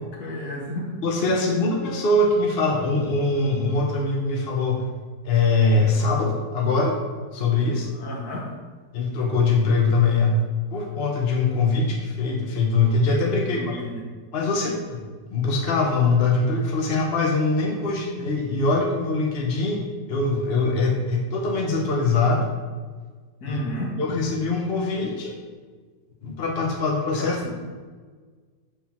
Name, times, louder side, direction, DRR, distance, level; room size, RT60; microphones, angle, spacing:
voice 1, 0.2-1.0 7.9-8.5 13.4-14.1 23.4-24.0 27.2-27.5, left 1 dB, 60° left, -1 dB, 1.7 m, -32 dB
voice 2, 1.0-4.8 5.2-7.0 7.3-7.9 8.9-10.4 10.7-13.9 14.3-19.8 20.1-22.4 23.5-23.6 24.0-25.4 26.2-27.4, left 3 dB, 45° left, 0 dB, 1.0 m, -22 dB
6.7 x 3.8 x 5.8 m, 1.5 s
omnidirectional pair, 1.9 m